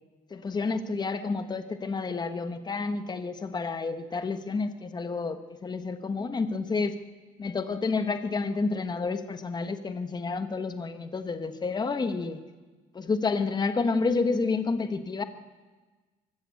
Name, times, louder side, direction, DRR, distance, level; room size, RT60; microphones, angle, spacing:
voice 1, 0.3-6.9 7.4-12.4 12.9-15.2, left 4 dB, 25° left, 9 dB, 1.3 m, -29 dB
24.0 x 15.0 x 8.4 m, 1.3 s
cardioid pair, 110°, 17 cm